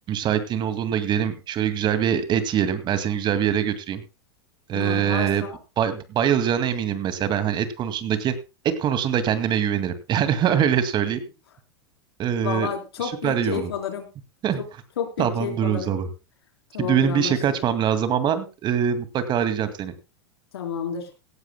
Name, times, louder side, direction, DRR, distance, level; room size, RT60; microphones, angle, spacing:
voice 1, 0.1-4.0 4.7-5.5 5.8-8.3 8.6-11.2 12.2-12.7 13.0-13.7 14.4-14.6 15.2-16.1 16.8-19.9, right 9 dB, 35° right, 11 dB, 2.2 m, -23 dB
voice 2, 4.7-5.6 12.4-14.1 15.0-15.9 16.7-17.4 20.5-21.1, left 8 dB, 80° left, 5 dB, 4.0 m, -30 dB
17.5 x 15.5 x 2.2 m, 0.29 s
hypercardioid pair, 105°, 13 cm